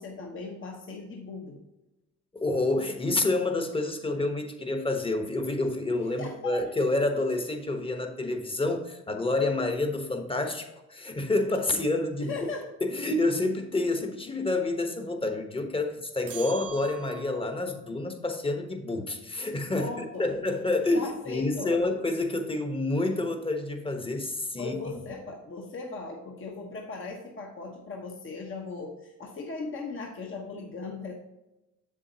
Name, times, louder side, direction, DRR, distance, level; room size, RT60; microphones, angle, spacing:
voice 1, 0.0-1.6 6.2-6.8 11.7-11.8 12.2-12.7 19.7-20.3 20.9-21.8 24.6-31.1, left 4 dB, 45° left, 0 dB, 1.1 m, -38 dB
voice 2, 2.4-12.3 12.8-19.9 20.2-24.8, left 2 dB, 20° left, 5 dB, 1.1 m, -28 dB
sound 1, 16.3-17.6, right 9 dB, 55° right, 0.9 m, -42 dB
7.2 x 7.1 x 2.8 m, 0.97 s
cardioid pair, 90°, 30 cm